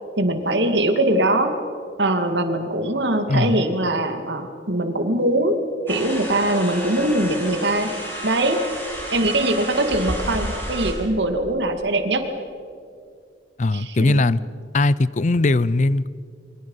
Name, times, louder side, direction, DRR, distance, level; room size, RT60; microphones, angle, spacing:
voice 1, 0.2-1.5 2.0-5.6 5.9-7.9 8.2-8.6 9.1-12.2 13.7-14.2, right 1 dB, 75° right, 6 dB, 2.3 m, -22 dB
voice 2, 3.3-3.6 13.6-14.4 14.7-16.1, left 2 dB, 40° left, 19 dB, 0.5 m, -19 dB
sound 1, 5.9-10.9, equal, 10° left, 5.7 m, -31 dB
28.0 x 24.0 x 5.6 m, 2.3 s
head